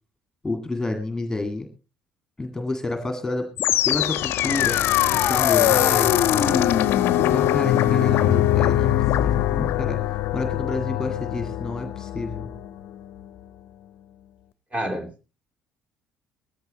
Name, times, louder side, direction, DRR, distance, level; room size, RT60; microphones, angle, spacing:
voice 1, 0.4-1.7 2.4-3.5 3.9-6.7 7.2-12.5, left 2 dB, 10° left, 6 dB, 1.9 m, -29 dB
sound 1, 3.6-12.7, left 12 dB, 55° left, 0.6 m, -21 dB
voice 2, 14.7-15.3, right 1 dB, 25° right, 5 dB, 3.6 m, -30 dB
19.0 x 15.0 x 3.0 m, 0.31 s
figure-of-eight pair, 50°, 5 cm